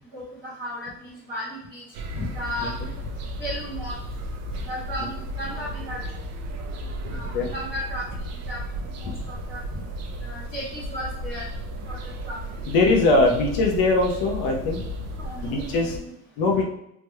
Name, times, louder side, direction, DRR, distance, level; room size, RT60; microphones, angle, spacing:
voice 1, 0.1-1.8 2.3-2.7 3.4-3.9 4.7-6.0 7.1-8.0 8.5-8.6 8.9-9.6 10.2-11.5 11.8-12.0 12.2-12.4 15.2-16.1 16.4-16.6, equal, 5° right, -11 dB, 1.4 m, -35 dB
sound 1, 1.9-16.0, equal, 45° right, 0.5 m, -34 dB
voice 2, 7.0-7.5 9.7-9.8 12.7-14.8 15.4-16.0 16.4-16.6, left 2 dB, 65° left, 1 dB, 0.9 m, -21 dB
3.5 x 2.9 x 2.2 m, 0.79 s
supercardioid pair, 95°, 39 cm